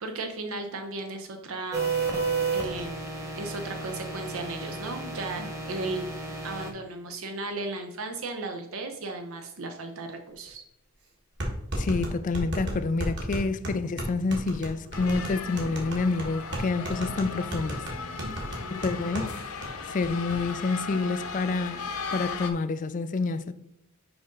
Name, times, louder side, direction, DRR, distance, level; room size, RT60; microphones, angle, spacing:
voice 1, 0.0-1.8 2.5-3.0 3.4-6.1 6.4-10.6 18.2-18.7, right 2 dB, 70° right, 0.7 m, -35 dB
sound 1, 1.7-6.7, right 4 dB, 15° right, 1.1 m, -32 dB
sound 2, 10.5-10.6 11.4-19.3 19.6-19.7 20.0-20.4, equal, 50° right, 1.6 m, -33 dB
voice 2, 11.8-17.8 18.7-19.5 19.8-23.5, left 3 dB, 35° left, 0.3 m, -28 dB
sound 3, 14.9-22.5, left 4 dB, 80° left, 0.8 m, -37 dB
5.9 x 5.2 x 3.8 m
head